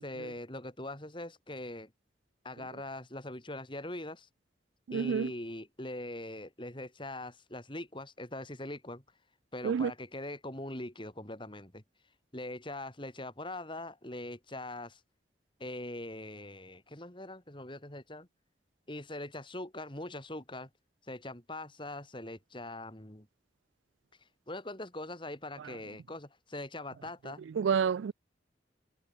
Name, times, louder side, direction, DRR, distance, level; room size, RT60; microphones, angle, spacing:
voice 1, 0.0-1.9 2.4-4.3 4.9-9.0 9.5-11.8 12.3-15.0 15.6-18.3 18.9-20.7 21.1-23.3 24.5-27.4, left 1 dB, 25° left, 4.2 m, -42 dB
voice 2, 4.9-5.3 9.6-9.9 27.5-28.1, right 6 dB, 90° right, 0.4 m, -29 dB
head